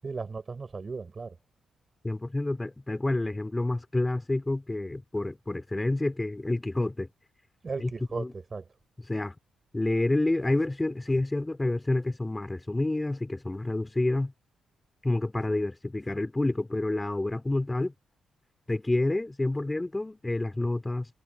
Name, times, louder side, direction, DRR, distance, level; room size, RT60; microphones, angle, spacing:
voice 1, 0.0-1.4 7.6-8.7, right 4 dB, 40° right, 7.7 m, -36 dB
voice 2, 2.0-7.1 7.8-7.9 8.2-8.3 9.1-9.3 9.7-14.3 15.0-17.9 18.7-21.1, left 2 dB, 20° left, 4.8 m, -28 dB
supercardioid pair, 55°, 0 cm